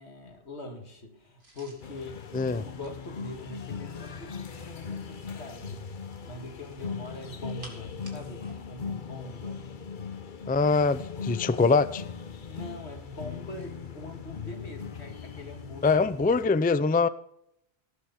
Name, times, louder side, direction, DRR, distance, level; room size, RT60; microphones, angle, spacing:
voice 1, 0.0-9.7 12.5-16.0 16.4-16.6, left 2 dB, 90° left, 2.4 m, -43 dB
sound 1, 1.4-4.1 6.5-8.6 8.9-9.1 11.3-12.0 12.8-13.9 15.8-16.0, right 1 dB, 50° right, 3.5 m, -55 dB
sound 2, 1.8-16.5, left 6 dB, 50° left, 1.1 m, -39 dB
voice 2, 10.5-12.0 15.8-17.1, left 4 dB, 15° left, 0.3 m, -23 dB
18.0 x 6.9 x 5.4 m
omnidirectional pair, 1.1 m